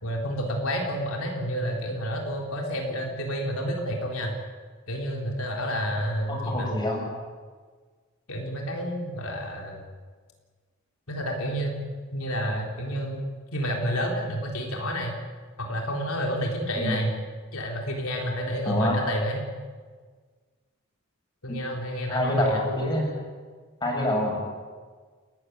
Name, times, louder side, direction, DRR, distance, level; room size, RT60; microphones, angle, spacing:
voice 1, 0.0-4.3 4.9-6.7 8.3-9.8 11.1-13.3 13.5-15.2 15.6-17.1 17.5-19.4 21.4-22.7, equal, 80° left, 1 dB, 3.7 m, -30 dB
voice 2, 6.3-7.1 16.8-17.1 18.6-19.0 21.5-21.6 22.1-23.1 23.8-24.4, left 1 dB, 20° left, -1 dB, 7.8 m, -26 dB
29.5 x 14.5 x 9.4 m, 1.5 s
head